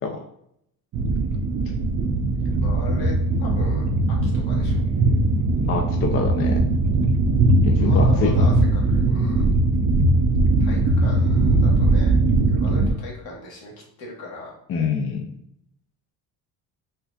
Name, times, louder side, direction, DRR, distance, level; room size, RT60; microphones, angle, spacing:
sound 1, 0.9-12.9, right 2 dB, 50° right, 0.5 m, -20 dB
voice 1, 2.6-4.8 7.8-9.5 10.6-12.2 12.5-13.7 14.0-14.5, left 2 dB, 70° left, -2 dB, 1.4 m, -38 dB
voice 2, 5.7-6.6 7.6-8.4 14.7-15.3, left 5 dB, 35° left, 3 dB, 0.4 m, -25 dB
4.4 x 2.6 x 2.3 m, 0.73 s
cardioid pair, 130°, 38 cm